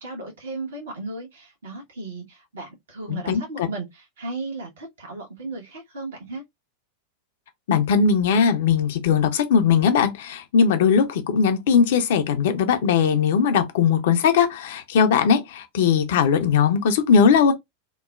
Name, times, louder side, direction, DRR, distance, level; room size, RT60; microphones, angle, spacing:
voice 1, 0.0-6.4, right 3 dB, 65° right, 1.1 m, -35 dB
voice 2, 3.1-3.7 7.7-17.5, left 6 dB, 55° left, 0.5 m, -19 dB
2.9 x 2.1 x 2.4 m
figure-of-eight pair, 90°, 0 cm